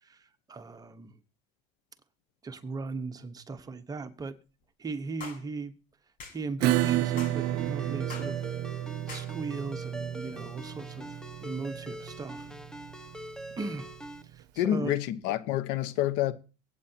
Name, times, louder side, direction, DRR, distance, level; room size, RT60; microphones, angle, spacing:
voice 1, 0.5-1.1 2.4-4.4 4.8-5.7 6.3-8.4 9.1-11.2 11.4-12.5 13.6-13.9 14.3-15.0, right 4 dB, 20° right, 1.1 m, -38 dB
sound 1, 5.2-5.4 6.2-6.4 7.2-7.4 8.1-8.3 9.1-9.3, left 5 dB, 45° left, 7.2 m, -42 dB
Acoustic guitar / Strum, 6.6-13.8, right 14 dB, 60° right, 0.7 m, -31 dB
Ringtone, 7.4-14.2, equal, 5° left, 1.2 m, -43 dB
voice 2, 14.6-16.3, left 12 dB, 70° left, 1.0 m, -28 dB
23.5 x 8.9 x 2.8 m
cardioid pair, 130°, 19 cm